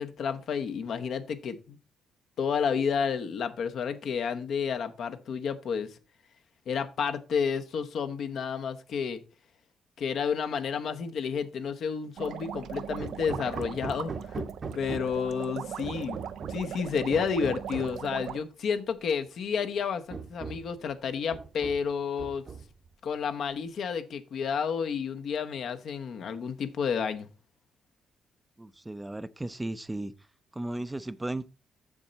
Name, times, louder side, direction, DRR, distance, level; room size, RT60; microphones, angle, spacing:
voice 1, 0.0-1.8 2.4-6.0 6.7-9.2 10.0-22.4 23.0-27.3, left 6 dB, 65° left, 0.9 m, -31 dB
sound 1, 12.2-18.4, right 9 dB, 75° right, 0.5 m, -39 dB
Hammer, 13.0-15.3 15.8-16.7 17.1-18.0 19.1-19.2 19.6-19.7 20.1-20.8 21.3-21.9 22.2-22.9, right 5 dB, 40° right, 0.9 m, -40 dB
voice 2, 28.6-30.1 30.5-31.5, right 1 dB, 15° right, 0.5 m, -35 dB
7.2 x 6.7 x 4.1 m
cardioid pair, 90°, 0 cm